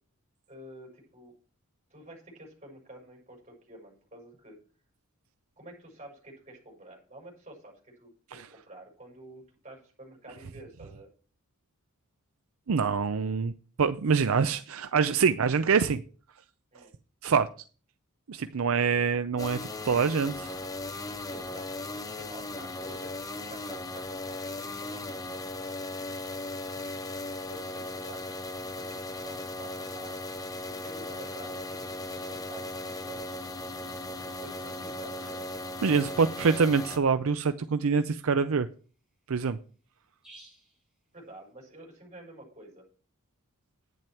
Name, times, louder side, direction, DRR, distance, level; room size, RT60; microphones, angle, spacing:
voice 1, 0.5-1.4 1.9-4.6 5.6-11.1 16.7-16.9 21.3-25.3 27.5-28.2 28.8-29.0 29.2-30.1 30.5-33.2 34.3-35.4 41.1-42.8, right 1 dB, 30° right, 5.8 m, -49 dB
voice 2, 12.7-13.5 13.8-16.0 17.2-17.5 18.3-19.6 19.8-20.6 35.8-38.7 39.3-39.6, right 5 dB, 70° right, 0.5 m, -25 dB
sound 1, 19.4-37.0, left 2 dB, 15° left, 0.7 m, -37 dB
sound 2, 36.4-36.8 40.2-40.7, right 1 dB, 5° right, 5.8 m, -51 dB
11.0 x 9.2 x 4.5 m
head